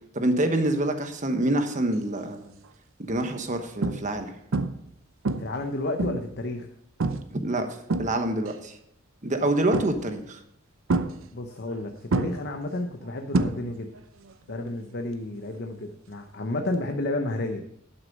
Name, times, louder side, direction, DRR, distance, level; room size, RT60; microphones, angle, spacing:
voice 1, 0.1-2.5 3.0-4.4 7.3-7.7 8.0-8.8 9.2-10.4, right 1 dB, 40° right, 6 dB, 1.1 m, -26 dB
sound 1, 2.2-2.5 3.1-3.2 3.8-4.2 4.5-4.9 5.3-6.4 7.0-7.4 7.7-8.5 9.7-10.2 10.9-11.8 12.1-14.0 14.3-14.7 16.7-16.8, right 3 dB, 85° right, 0.7 m, -28 dB
voice 2, 5.4-6.7 11.3-13.9 14.5-17.6, left 2 dB, 55° left, 4 dB, 0.8 m, -31 dB
11.0 x 6.2 x 5.3 m, 0.73 s
head